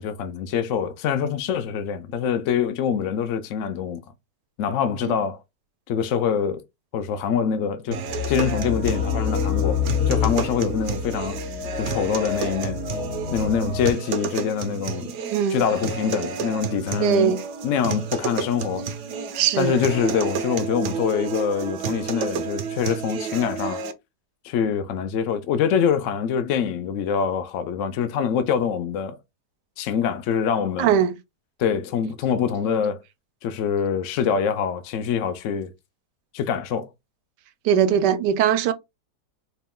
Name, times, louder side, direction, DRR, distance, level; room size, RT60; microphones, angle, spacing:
voice 1, 0.0-4.0 4.6-5.4 5.9-6.6 6.9-11.4 11.8-12.8 13.3-15.1 15.5-17.4 17.6-18.9 19.6-23.8 24.4-29.2 29.8-30.9 31.6-33.0 33.4-35.7 36.3-36.9, left 7 dB, 70° left, 0.8 m, -25 dB
sound 1, 7.9-23.9, right 6 dB, 60° right, 0.8 m, -31 dB
sound 2, 8.1-13.9, left 8 dB, 50° left, 1.0 m, -27 dB
voice 2, 15.3-15.6 17.0-17.4 19.3-19.8 30.8-31.2 37.6-38.7, right 9 dB, 85° right, 1.2 m, -20 dB
4.5 x 2.3 x 3.6 m
omnidirectional pair, 1.8 m